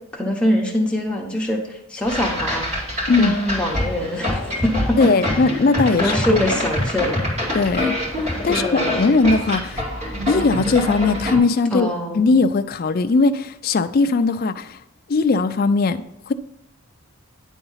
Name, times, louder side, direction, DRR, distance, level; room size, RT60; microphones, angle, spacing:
voice 1, 0.1-2.7 3.2-5.0 5.9-7.3 8.5-9.0 11.7-12.2, equal, 5° left, -1 dB, 1.0 m, -23 dB
sound 1, 2.0-11.4, left 1 dB, 30° right, 2.5 m, -25 dB
voice 2, 5.0-6.4 7.5-7.9 8.4-9.8 10.3-11.9 12.1-14.8 15.1-16.3, left 3 dB, 40° left, 9 dB, 0.3 m, -19 dB
10.0 x 3.9 x 5.6 m, 0.82 s
head